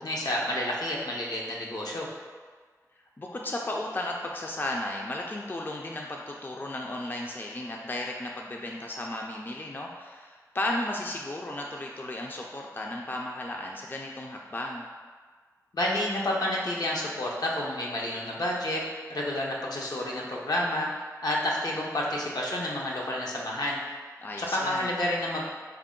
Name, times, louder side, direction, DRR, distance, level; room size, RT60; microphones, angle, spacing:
voice 1, 0.0-2.1 15.7-18.8 19.1-20.9 21.2-23.8 24.4-25.4, left 1 dB, 80° left, -3 dB, 0.6 m, -29 dB
voice 2, 3.2-14.9 24.2-24.9, left 1 dB, 30° left, 0 dB, 0.3 m, -34 dB
4.5 x 2.1 x 3.7 m, 1.5 s
wide cardioid pair, 65°, 7 cm